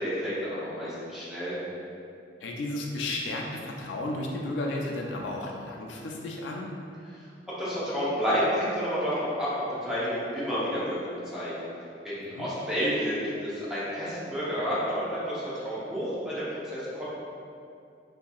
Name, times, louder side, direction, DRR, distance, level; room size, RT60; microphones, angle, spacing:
voice 1, 0.0-1.6 7.6-11.5 12.0-17.0, equal, 5° right, -11 dB, 0.7 m, -30 dB
voice 2, 2.4-6.7 12.3-12.5, left 2 dB, 90° left, -1 dB, 0.4 m, -33 dB
2.8 x 2.6 x 2.3 m, 2.5 s
head